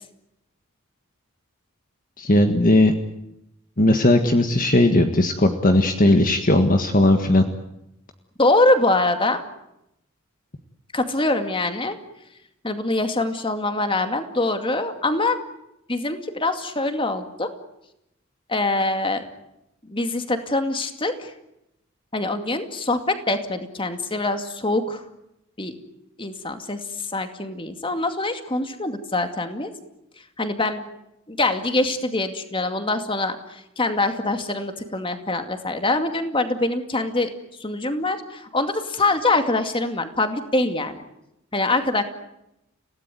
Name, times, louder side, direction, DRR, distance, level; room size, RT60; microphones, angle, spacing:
voice 1, 2.2-2.9 3.8-7.4, left 1 dB, 40° left, 6 dB, 1.7 m, -17 dB
voice 2, 8.4-9.4 10.9-12.0 12.6-15.4 15.9-17.5 18.5-19.2 19.9-21.3 22.1-25.0 25.6-25.8 26.2-29.7 30.4-30.8 31.3-37.3 37.6-41.0 41.5-42.0, left 2 dB, 25° left, 7 dB, 2.3 m, -24 dB
30.0 x 17.5 x 9.4 m, 0.85 s
head